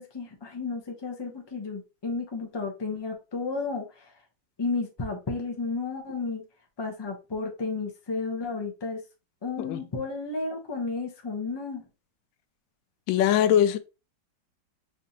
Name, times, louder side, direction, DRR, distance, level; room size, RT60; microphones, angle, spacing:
voice 1, 0.0-4.1 4.6-6.4 6.8-9.0 9.4-11.8, left 4 dB, 20° left, 0.8 m, -32 dB
voice 2, 13.1-13.8, left 10 dB, 85° left, 1.3 m, -21 dB
4.9 x 3.4 x 2.8 m
omnidirectional pair, 2.0 m